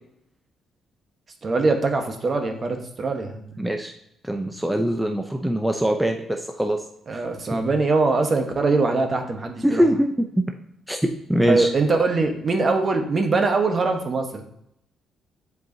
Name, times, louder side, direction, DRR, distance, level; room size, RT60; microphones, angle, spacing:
voice 1, 1.4-3.6 7.1-9.8 11.4-14.4, right 3 dB, 40° right, 4 dB, 1.1 m, -22 dB
voice 2, 3.6-3.9 4.2-6.3 6.6-6.8 7.1-7.2 9.6-10.1 10.9-11.0 11.3-11.7, equal, 5° right, 3 dB, 0.6 m, -22 dB
7.7 x 4.6 x 2.7 m, 0.78 s
cardioid pair, 90°, 0 cm